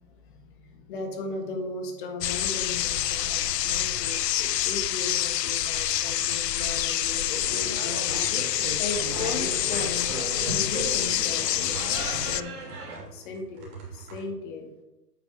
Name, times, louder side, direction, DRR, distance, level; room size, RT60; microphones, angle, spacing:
voice 1, 0.0-11.8 12.1-12.5 12.9-14.7, left 3 dB, 30° left, 4 dB, 1.5 m, -37 dB
sound 1, 2.2-12.4, left 12 dB, 85° left, 0.6 m, -27 dB
sound 2, 2.6-14.2, right 5 dB, 30° right, 3.3 m, -47 dB
sound 3, 7.4-13.0, right 2 dB, 65° right, 2.9 m, -36 dB
9.0 x 5.2 x 4.8 m, 0.95 s
hypercardioid pair, 150°, 48 cm